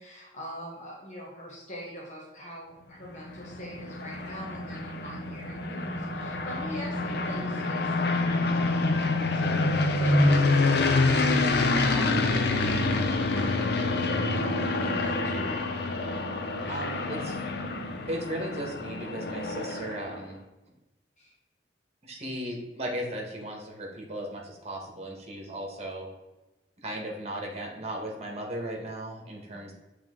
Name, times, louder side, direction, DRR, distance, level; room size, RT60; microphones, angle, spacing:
voice 1, 0.0-15.6 16.6-16.9 21.2-21.3, left 1 dB, 40° left, -4 dB, 1.2 m, -43 dB
sound 1, 3.1-20.2, left 2 dB, 65° left, 0.6 m, -27 dB
voice 2, 16.7-17.4 18.1-20.4 22.0-26.1 26.8-29.7, right 1 dB, 35° right, 0 dB, 1.4 m, -36 dB
7.4 x 3.5 x 3.7 m, 1.0 s
head